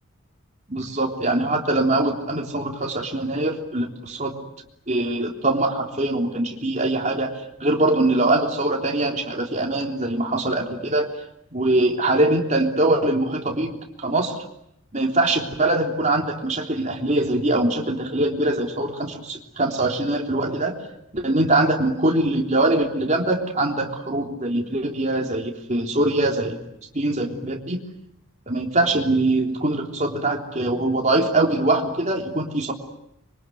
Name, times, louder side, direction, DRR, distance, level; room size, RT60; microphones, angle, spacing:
voice 1, 0.7-4.5 4.9-7.3 7.6-11.1 11.5-13.7 14.0-14.4 14.9-20.8 21.1-26.6 26.9-27.8 28.5-32.7, right 2 dB, 35° right, 1 dB, 3.5 m, -22 dB
26.0 x 24.0 x 9.4 m, 0.81 s
head